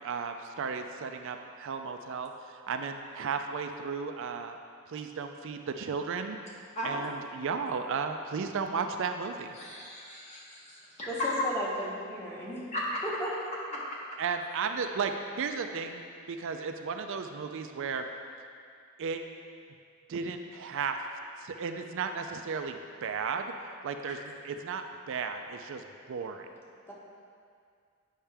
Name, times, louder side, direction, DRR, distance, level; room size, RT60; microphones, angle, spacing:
voice 1, 0.0-4.6 4.9-6.4 6.8-9.6 14.2-16.0 16.3-18.0 19.0-19.2 20.1-21.0 21.4-23.5 23.8-25.8 26.1-26.5, right 5 dB, 60° right, 6 dB, 0.4 m, -34 dB
voice 2, 6.7-7.1 9.5-11.3 12.7-13.0 13.7-14.0 24.1-24.2, left 1 dB, 30° left, -6 dB, 1.5 m, -36 dB
voice 3, 11.1-12.6 13.0-13.3 26.9-27.0, equal, 10° left, -5 dB, 1.2 m, -35 dB
8.7 x 5.5 x 3.4 m, 2.3 s
head